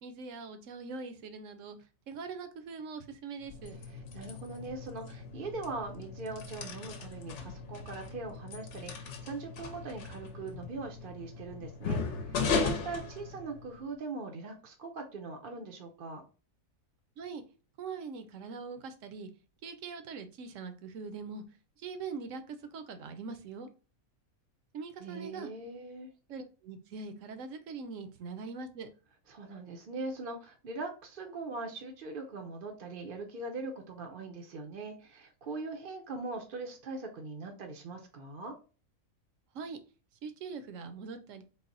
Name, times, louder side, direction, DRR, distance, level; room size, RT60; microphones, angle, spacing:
voice 1, 0.0-1.8 2.1-3.8 17.2-17.4 17.8-19.3 19.6-21.4 21.8-23.7 24.7-25.5 26.3-28.9 39.5-39.8 40.2-41.4, right 4 dB, 70° right, 8 dB, 1.0 m, -42 dB
sound 1, 3.4-13.9, left 4 dB, 65° left, 0.9 m, -37 dB
voice 2, 3.8-16.2 25.0-26.1 29.3-38.5, right 3 dB, 55° right, 3 dB, 0.6 m, -41 dB
4.0 x 2.1 x 3.8 m, 0.34 s
omnidirectional pair, 1.4 m